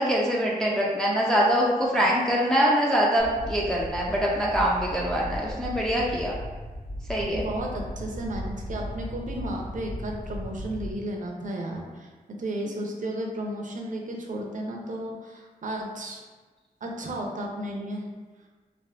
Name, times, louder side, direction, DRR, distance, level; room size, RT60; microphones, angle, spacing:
voice 1, 0.0-6.4 7.1-7.4, equal, 5° left, -4 dB, 0.3 m, -24 dB
sound 1, 3.2-11.0, equal, 65° left, 1.5 m, -36 dB
voice 2, 7.3-16.2 16.8-18.1, right 1 dB, 55° right, 1 dB, 0.5 m, -33 dB
3.4 x 2.4 x 2.3 m, 1.3 s
wide cardioid pair, 150°, 16 cm